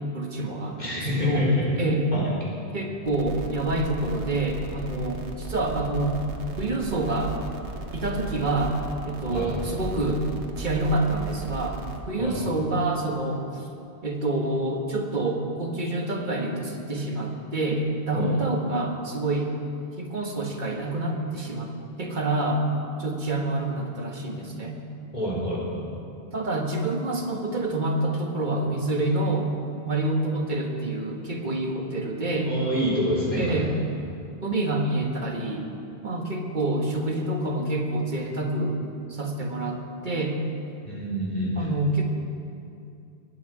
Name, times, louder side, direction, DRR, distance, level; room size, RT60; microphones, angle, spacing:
voice 1, 0.1-1.5 1.7-2.1 2.7-6.2 6.6-7.3 7.9-8.8 9.0-10.2 10.6-11.8 12.1-13.6 14.0-19.5 20.0-21.7 22.0-22.6 23.0-24.8 26.3-29.5 29.8-32.5 33.4-33.7 34.4-35.7 36.0-38.8 39.1-40.4 41.5-42.0, right 2 dB, 45° right, 2 dB, 1.5 m, -27 dB
voice 2, 0.8-1.6 2.1-2.2 9.3-9.5 12.2-12.4 18.1-18.3 25.1-25.6 32.4-33.6 40.8-41.7, left 1 dB, 40° left, -7 dB, 4.2 m, -26 dB
sound 1, 3.1-12.0, right 3 dB, 85° right, 1.4 m, -35 dB
20.5 x 9.0 x 4.9 m, 2.6 s
omnidirectional pair, 1.1 m